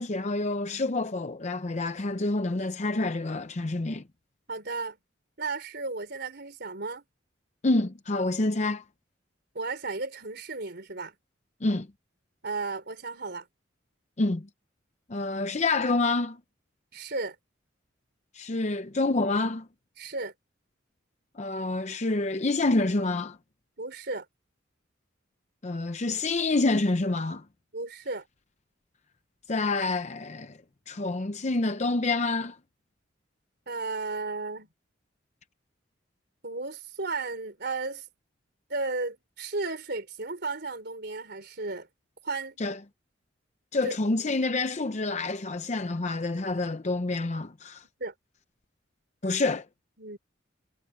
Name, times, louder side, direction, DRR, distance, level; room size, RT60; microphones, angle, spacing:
voice 1, 0.0-4.0 7.6-8.8 11.6-11.9 14.2-14.5 15.1-16.4 18.3-19.7 21.4-23.4 25.6-27.4 29.5-30.6 30.9-32.6 42.6-42.8 43.7-47.8 49.2-49.7, left 2 dB, 35° left, 0.7 m, -27 dB
voice 2, 4.5-5.0 5.4-7.0 9.5-11.2 12.4-13.5 16.9-17.4 20.0-20.3 23.8-24.3 27.7-28.3 33.7-34.7 36.4-38.1 38.7-41.9 42.2-42.6 43.8-44.0 48.0-48.1 50.0-50.2, right 3 dB, 60° right, 4.0 m, -34 dB
head